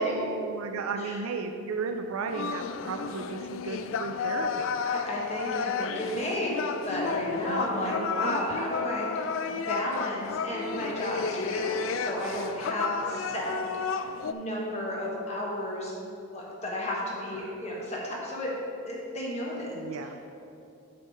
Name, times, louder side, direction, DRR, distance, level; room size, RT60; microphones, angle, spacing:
voice 1, 0.0-4.8 7.3-8.4 17.4-17.6 19.7-20.1, right 4 dB, 85° right, 5 dB, 0.4 m, -34 dB
sound 1, 2.3-14.3, left 6 dB, 65° left, 0.3 m, -32 dB
voice 2, 4.8-6.6 6.8-13.5 14.2-15.9 16.3-18.5 18.9-19.8, left 1 dB, 30° left, -4 dB, 1.3 m, -33 dB
8.3 x 3.6 x 6.3 m, 2.7 s
head